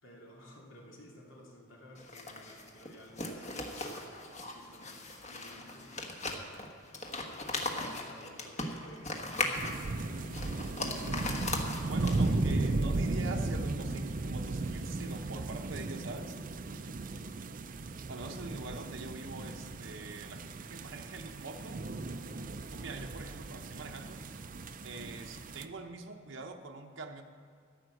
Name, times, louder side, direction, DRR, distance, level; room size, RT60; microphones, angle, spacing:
voice 1, 0.0-6.0 7.6-11.3 18.3-18.5, left 1 dB, 75° left, -3 dB, 2.7 m, -53 dB
sound 1, 2.0-12.5, left 2 dB, 35° left, 1.3 m, -38 dB
sound 2, 9.6-25.7, right 2 dB, 40° right, 0.5 m, -36 dB
voice 2, 11.8-16.4 18.1-21.8 22.7-24.2 24.8-27.2, right 3 dB, 65° right, 3 dB, 0.8 m, -44 dB
14.0 x 8.7 x 6.4 m, 2.4 s
head